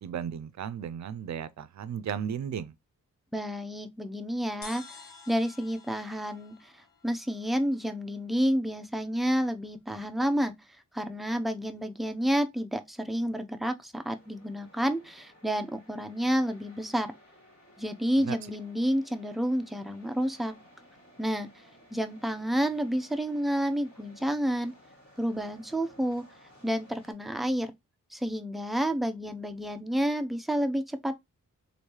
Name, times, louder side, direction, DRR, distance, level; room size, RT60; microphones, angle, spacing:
voice 1, 0.0-2.7 18.2-18.4, right 8 dB, 55° right, 0.5 m, -35 dB
voice 2, 3.3-5.0 5.3-10.5 10.9-17.1 17.8-20.5 21.2-21.5 21.9-24.7 25.2-26.2 26.6-27.7 28.1-31.2, equal, ahead, 0.5 m, -30 dB
sound 1, 4.6-8.1, left 4 dB, 70° left, 1.1 m, -50 dB
sound 2, 13.9-27.1, equal, 45° left, 1.9 m, -57 dB
3.2 x 2.6 x 2.9 m
cardioid pair, 45°, 34 cm